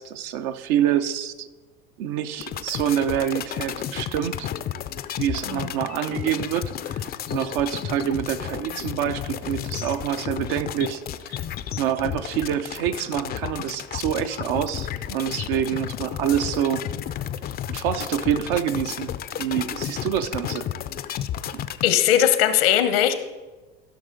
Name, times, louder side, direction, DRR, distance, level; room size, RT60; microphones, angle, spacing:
voice 1, 0.0-1.5 2.0-4.5 5.2-7.0 7.3-11.0 11.3-11.4 11.7-16.8 17.7-20.7 21.5-21.6, right 10 dB, 65° right, 9 dB, 0.8 m, -26 dB
sound 1, 2.4-21.9, left 10 dB, 30° left, 0.5 m, -32 dB
voice 2, 21.8-23.1, left 10 dB, 75° left, 10 dB, 1.0 m, -19 dB
15.0 x 6.2 x 3.9 m, 1.2 s
hypercardioid pair, 85°, 29 cm